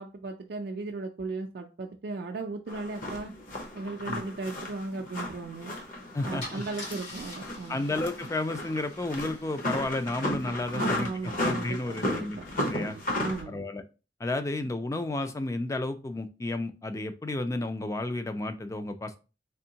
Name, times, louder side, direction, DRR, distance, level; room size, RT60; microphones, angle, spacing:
voice 1, 0.0-3.3 3.7-5.7 6.2-7.8 10.7-12.4 12.9-13.6, right 3 dB, 55° right, 0.4 m, -36 dB
sound 1, 2.7-13.4, left 1 dB, 50° left, 0.9 m, -34 dB
Car / Engine starting / Idling, 5.7-5.9 6.4-10.3, left 2 dB, 85° left, 1.9 m, -45 dB
voice 2, 6.1-6.6 7.7-11.1 11.4-13.0 13.5-13.8 14.2-19.2, left 2 dB, 15° left, 0.3 m, -32 dB
3.5 x 3.3 x 2.8 m
head